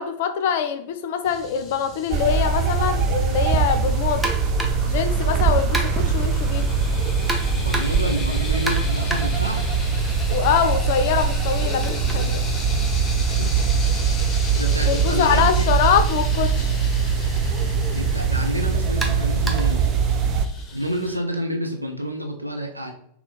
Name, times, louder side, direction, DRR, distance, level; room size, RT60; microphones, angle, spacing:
voice 1, 0.0-4.3 4.8-6.7 10.3-12.4 14.9-16.7, left 8 dB, 50° left, 9 dB, 0.5 m, -23 dB
sound 1, 1.2-21.2, left 4 dB, 25° left, 0.8 m, -37 dB
sound 2, 2.1-20.5, right 5 dB, 35° right, 0.5 m, -22 dB
sound 3, 4.2-4.9 5.7-6.2 7.3-8.1 8.7-10.4 10.7-14.6 15.7-15.9 16.3-16.4 17.4-17.5 19.0-19.8, right 2 dB, 10° right, 0.8 m, -33 dB
voice 2, 7.5-9.6 13.3-14.0 14.6-15.7 17.9-20.0 20.7-22.9, equal, 85° right, 3 dB, 0.6 m, -29 dB
4.0 x 2.9 x 3.9 m, 0.70 s
figure-of-eight pair, 90°, 0 cm